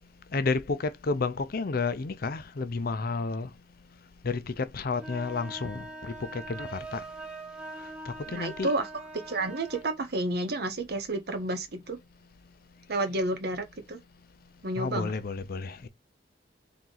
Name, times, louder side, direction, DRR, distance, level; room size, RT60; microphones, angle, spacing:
voice 1, 0.3-3.5 4.2-7.0 8.1-8.7 14.8-15.9, left 4 dB, 55° left, 0.6 m, -31 dB
sound 1, 4.9-9.9, right 2 dB, 5° right, 0.9 m, -42 dB
voice 2, 8.3-8.9 9.3-12.0 12.9-14.0 14.6-15.1, right 2 dB, 60° right, 0.9 m, -30 dB
3.7 x 2.9 x 3.8 m
head